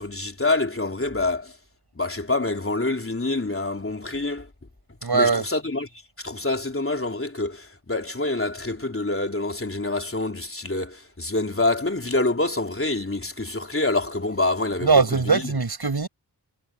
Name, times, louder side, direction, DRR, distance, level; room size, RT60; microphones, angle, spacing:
voice 1, 0.0-1.6 2.0-4.5 5.1-5.9 6.2-15.4, left 2 dB, 30° left, 3.5 m, -26 dB
voice 2, 5.0-5.5 14.8-16.1, right 4 dB, 65° right, 6.8 m, -21 dB
wide cardioid pair, 60°, 42 cm